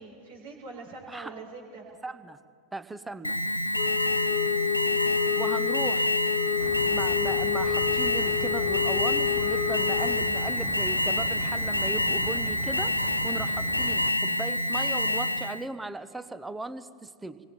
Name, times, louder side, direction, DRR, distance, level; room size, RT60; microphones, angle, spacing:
voice 1, 0.0-1.8 4.1-4.4, right 3 dB, 55° right, -1 dB, 5.9 m, -44 dB
voice 2, 2.0-2.4 2.7-3.4 5.4-6.1 6.9-12.9 13.2-17.4, right 2 dB, 10° right, 14 dB, 0.9 m, -37 dB
Alarm, 3.2-15.6, left 1 dB, 85° left, 0.6 m, -27 dB
Wind instrument woodwind instrument, 3.8-10.6, left 13 dB, 50° left, 1.0 m, -30 dB
sound 1, 6.6-14.1, left 3 dB, 10° left, 0.5 m, -43 dB
28.0 x 23.5 x 4.4 m, 2.1 s
figure-of-eight pair, 90°, 0 cm